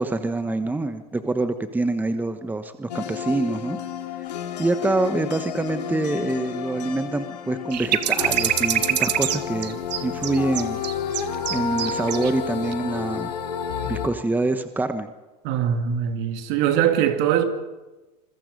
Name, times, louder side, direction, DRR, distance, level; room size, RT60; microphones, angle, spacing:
voice 1, 0.0-3.8 4.6-10.8 11.5-13.3 13.8-15.1, right 2 dB, 10° right, 1.2 m, -25 dB
sound 1, 2.9-14.1, left 8 dB, 80° left, 2.8 m, -31 dB
sound 2, 7.7-12.3 12.6-12.7, right 12 dB, 75° right, 1.3 m, -25 dB
voice 2, 15.4-17.4, right 9 dB, 55° right, 2.6 m, -22 dB
26.5 x 22.0 x 5.3 m
hypercardioid pair, 100°, 21 cm